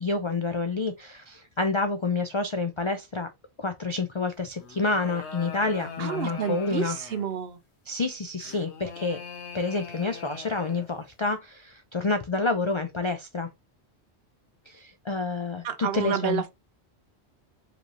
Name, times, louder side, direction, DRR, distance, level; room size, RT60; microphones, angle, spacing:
voice 1, 0.0-3.3 3.6-7.0 7.9-9.2 9.5-13.5 14.7-16.4, left 3 dB, 50° left, 0.3 m, -28 dB
sound 1, 4.5-7.4 8.4-11.0, left 5 dB, 85° left, 1.2 m, -42 dB
voice 2, 6.0-7.6 15.6-16.5, right 8 dB, 65° right, 0.8 m, -29 dB
5.0 x 3.1 x 2.7 m
omnidirectional pair, 1.1 m